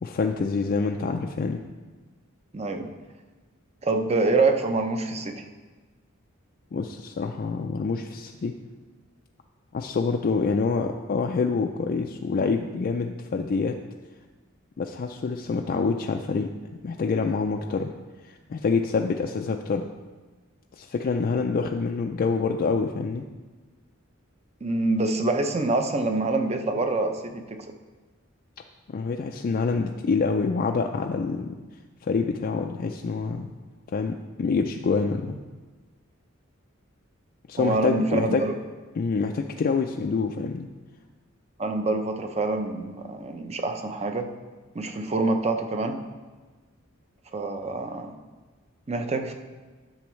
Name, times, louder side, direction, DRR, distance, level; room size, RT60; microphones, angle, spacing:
voice 1, 0.0-1.6 6.7-8.5 9.7-13.8 14.8-16.5 16.8-17.9 18.3-19.9 20.7-23.2 28.9-31.5 32.0-33.5 33.9-35.4 37.5-38.4 39.0-40.7, left 4 dB, 45° left, 3 dB, 0.3 m, -26 dB
voice 2, 2.5-2.9 3.8-5.4 24.6-27.6 37.6-38.5 41.6-44.3 44.7-46.0 47.3-48.1 48.9-49.3, right 3 dB, 30° right, 6 dB, 0.6 m, -26 dB
10.5 x 6.8 x 3.1 m, 1.3 s
head